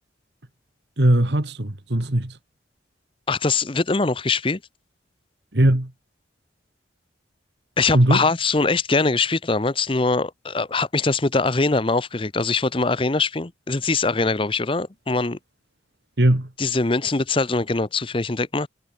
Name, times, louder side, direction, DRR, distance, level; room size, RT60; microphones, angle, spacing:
voice 1, 1.0-2.4 5.5-5.9 7.9-8.3 16.2-16.5, right 1 dB, 60° right, 2.1 m, -19 dB
voice 2, 3.3-4.6 7.8-15.4 16.6-18.7, left 3 dB, 25° left, 0.8 m, -22 dB
head